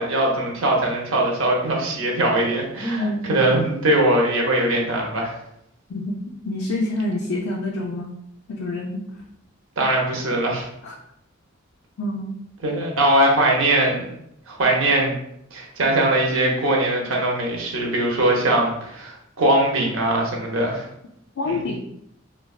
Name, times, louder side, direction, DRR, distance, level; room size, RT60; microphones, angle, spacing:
voice 1, 0.0-5.4 9.8-10.7 12.6-14.2 14.5-15.1 15.5-20.9 21.5-21.6, right 1 dB, 75° right, -1 dB, 0.7 m, -21 dB
voice 2, 3.0-3.6 5.9-6.2 6.4-8.1 8.5-9.0 10.8-10.9 12.0-12.4 21.4-21.8, left 2 dB, 85° left, -1 dB, 0.4 m, -27 dB
3.3 x 2.2 x 2.3 m, 0.76 s
head